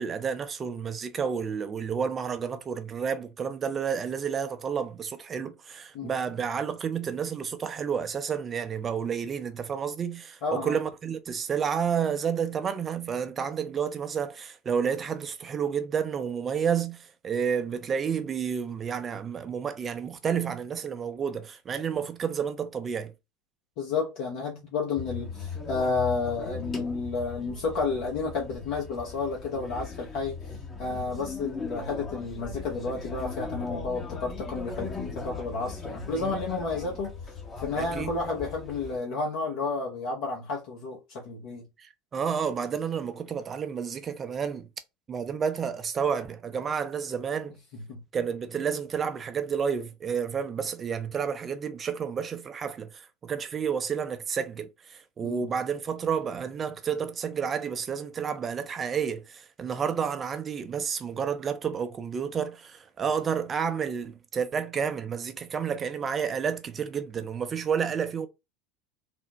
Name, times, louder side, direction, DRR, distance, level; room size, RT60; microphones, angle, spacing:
voice 1, 0.0-23.1 36.1-36.4 37.8-38.2 41.8-44.7 45.1-47.6 48.1-68.3, right 7 dB, 30° right, 0.5 m, -30 dB
voice 2, 10.4-10.8 23.8-30.4 30.8-41.7 47.9-48.0 55.2-55.4, left 4 dB, 60° left, 0.8 m, -31 dB
sound 1, 25.0-39.0, left 4 dB, 25° left, 0.8 m, -38 dB
3.4 x 2.1 x 2.9 m
hypercardioid pair, 75°, 0 cm